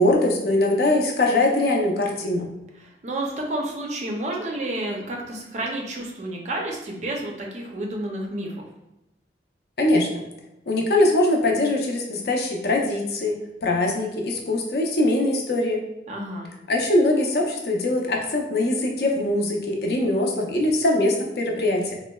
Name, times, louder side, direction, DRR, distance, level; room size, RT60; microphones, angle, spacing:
voice 1, 0.0-2.5 9.8-10.2 10.7-15.8 16.7-22.0, left 1 dB, 60° left, 0 dB, 0.5 m, -22 dB
voice 2, 2.8-8.5 16.1-16.5, right 1 dB, 40° right, 0 dB, 0.4 m, -30 dB
3.7 x 2.1 x 2.2 m, 0.93 s
head